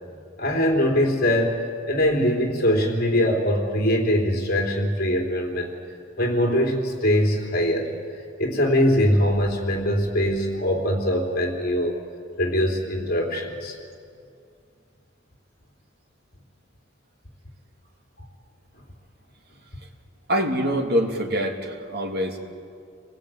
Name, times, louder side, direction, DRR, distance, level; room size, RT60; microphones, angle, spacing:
voice 1, 0.4-5.7 6.2-7.9 8.4-12.0 12.4-13.8, equal, 50° left, 1 dB, 3.6 m, -22 dB
voice 2, 20.3-22.4, equal, 55° right, 1 dB, 3.0 m, -24 dB
29.5 x 20.5 x 9.1 m, 2.3 s
head